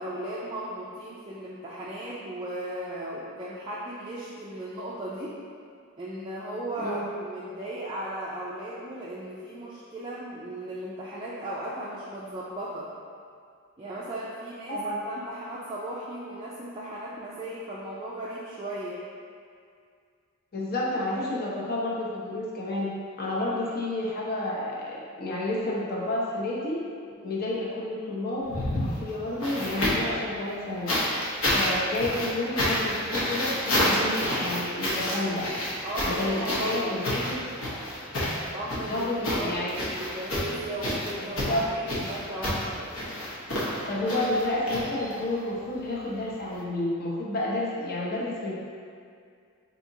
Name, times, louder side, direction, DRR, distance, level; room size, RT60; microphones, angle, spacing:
voice 1, 0.0-5.4 6.0-12.9 13.8-19.0 27.1-27.3 35.8-37.3 38.4-42.9, right 1 dB, 20° right, -7 dB, 0.3 m, -36 dB
voice 2, 6.8-7.1 14.7-15.0 20.5-26.8 27.2-30.9 31.5-35.5 36.0-37.4 38.9-39.9 41.1-41.6 43.9-48.5, left 1 dB, 45° left, -5 dB, 0.7 m, -30 dB
sound 1, 28.4-30.2 30.9-45.4 46.5-46.6, left 1 dB, 70° left, 0.9 m, -29 dB
4.8 x 2.8 x 2.7 m, 2.3 s
head